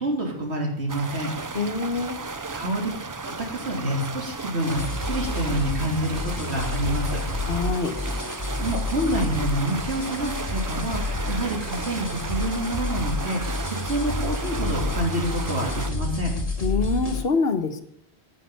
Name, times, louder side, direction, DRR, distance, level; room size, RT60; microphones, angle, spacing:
voice 1, 0.0-1.3 2.5-2.9 3.5-7.2 8.2-16.3, right 1 dB, 85° right, 1 dB, 3.4 m, -28 dB
sound 1, 0.9-15.9, right 4 dB, 30° right, 0.4 m, -35 dB
voice 2, 1.5-2.2 7.5-7.9 16.6-17.8, left 4 dB, 65° left, 9 dB, 1.4 m, -25 dB
sound 2, 4.6-17.2, left 2 dB, 35° left, 2.5 m, -30 dB
10.0 x 8.9 x 9.3 m, 0.74 s
omnidirectional pair, 1.1 m